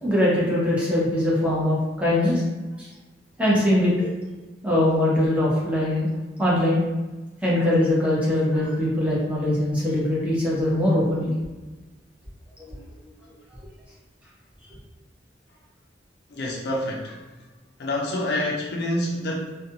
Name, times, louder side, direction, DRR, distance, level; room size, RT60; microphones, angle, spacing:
voice 1, 0.0-2.4 2.8-2.9 3.4-4.1 4.6-6.1 6.4-6.8 7.4-11.3, left 1 dB, 10° right, -7 dB, 0.7 m, -22 dB
voice 2, 16.3-17.2 17.8-19.6, left 1 dB, 60° left, -2 dB, 0.4 m, -27 dB
2.4 x 2.2 x 2.8 m, 1.2 s
head